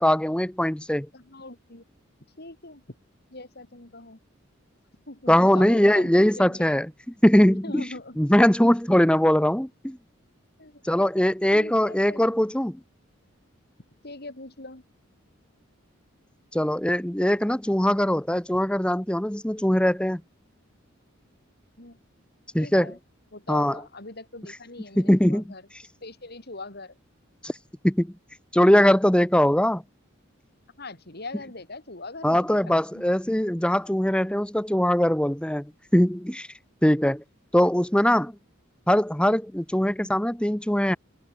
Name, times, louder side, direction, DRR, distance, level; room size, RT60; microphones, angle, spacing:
voice 1, 0.0-1.1 5.3-7.8 8.2-10.0 10.8-12.8 16.5-20.2 22.5-22.9 23.5-23.8 25.0-25.5 27.4-27.5 27.8-28.1 28.5-29.8 32.2-36.5 36.8-37.2 37.5-38.3 38.9-41.0, equal, 5° left, 0.9 m, -21 dB
voice 2, 1.1-1.8 2.4-3.0 3.3-4.2 5.1-6.7 7.6-8.2 8.6-8.7 10.6-10.8 11.5-12.3 14.0-14.8 21.8-22.0 22.6-23.0 23.3-25.6 26.0-27.0 30.8-33.0, left 2 dB, 50° left, 4.1 m, -41 dB
head